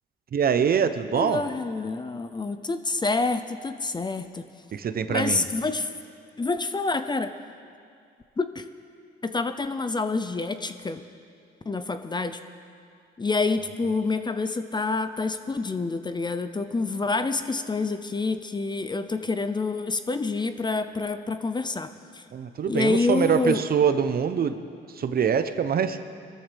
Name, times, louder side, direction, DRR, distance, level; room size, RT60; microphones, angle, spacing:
voice 1, 0.3-1.5 4.7-5.5 22.3-24.6 24.9-26.0, right 7 dB, 50° right, 10 dB, 0.8 m, -24 dB
voice 2, 1.1-4.4 5.1-5.9 6.4-7.3 8.4-8.7 9.2-11.0 11.7-12.4 13.2-22.2 22.7-23.6, left 3 dB, 20° left, 10 dB, 0.6 m, -27 dB
21.5 x 13.5 x 3.4 m, 2.3 s
cardioid pair, 90°, 20 cm